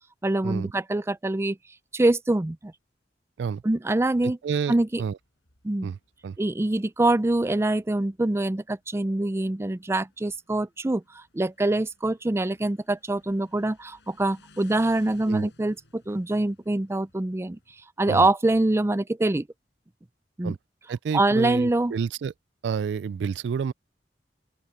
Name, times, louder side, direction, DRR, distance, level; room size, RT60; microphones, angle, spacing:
voice 1, 0.2-1.6 1.9-2.7 3.6-4.4 4.7-5.0 5.6-5.9 6.4-17.6 18.0-19.5 20.4-20.5 21.1-21.9, right 2 dB, 15° right, 0.4 m, -24 dB
voice 2, 4.2-5.2 5.8-6.0 6.2-6.4 15.3-15.5 18.1-18.3 20.4-20.6 20.9-22.3 22.6-23.7, right 6 dB, 75° right, 0.3 m, -29 dB
Motorcycle, 4.9-17.8, left 3 dB, 85° left, 5.0 m, -60 dB
open air
head